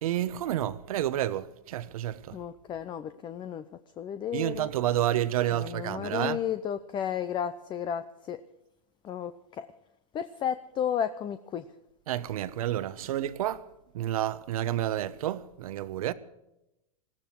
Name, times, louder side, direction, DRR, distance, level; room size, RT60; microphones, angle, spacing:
voice 1, 0.0-2.4 4.3-6.4 12.1-13.6 13.9-16.1, right 12 dB, 70° right, 1.1 m, -30 dB
voice 2, 2.3-3.7 4.0-4.7 5.5-8.4 9.0-9.7 10.1-11.7, left 9 dB, 25° left, 0.7 m, -33 dB
20.0 x 15.0 x 4.6 m
hypercardioid pair, 125°, 19 cm